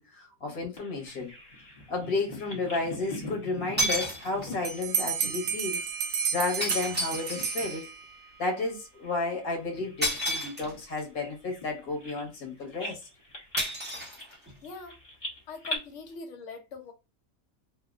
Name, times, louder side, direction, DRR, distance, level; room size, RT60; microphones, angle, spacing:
voice 1, 0.0-1.3 1.9-5.9 6.3-7.9 8.4-13.0, left 3 dB, 85° left, 1.6 m, -32 dB
Bird vocalization bird call bird song, 0.8-6.7 7.0-7.9 8.2-8.4 9.0-12.5 12.8-15.8, left 1 dB, 35° left, 1.2 m, -42 dB
sound 1, 1.1-1.2 3.2-3.3 3.8-4.6 6.6-7.8 10.0-11.0 13.6-14.7, equal, 10° right, 0.7 m, -31 dB
Bell, 4.6-8.3, right 7 dB, 80° right, 1.0 m, -31 dB
voice 2, 14.6-15.0 15.5-16.9, left 4 dB, 65° left, 1.0 m, -42 dB
3.5 x 2.2 x 2.4 m
omnidirectional pair, 1.5 m